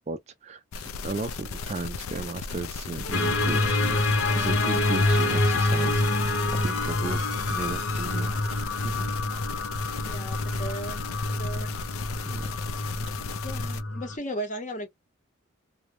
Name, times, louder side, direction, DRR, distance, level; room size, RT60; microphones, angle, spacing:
voice 1, 0.0-9.1 12.3-12.6, right 3 dB, 30° right, 0.3 m, -35 dB
sound 1, 0.7-13.8, left 5 dB, 85° left, 0.4 m, -35 dB
sound 2, 3.1-14.2, left 2 dB, 70° left, 0.9 m, -27 dB
voice 2, 10.0-11.0 11.3-11.7 13.4-14.9, right 1 dB, 35° left, 0.7 m, -36 dB
2.6 x 2.1 x 3.0 m
head